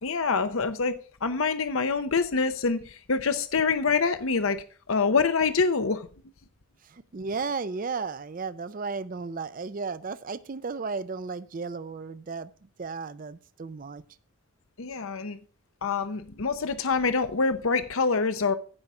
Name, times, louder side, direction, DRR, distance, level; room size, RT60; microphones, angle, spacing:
voice 1, 0.0-0.9 1.2-6.1 14.8-15.4 15.8-18.5, left 4 dB, 75° left, 0.8 m, -26 dB
voice 2, 6.9-12.5 12.8-14.0, right 4 dB, 40° right, 0.4 m, -34 dB
15.0 x 5.6 x 4.9 m
head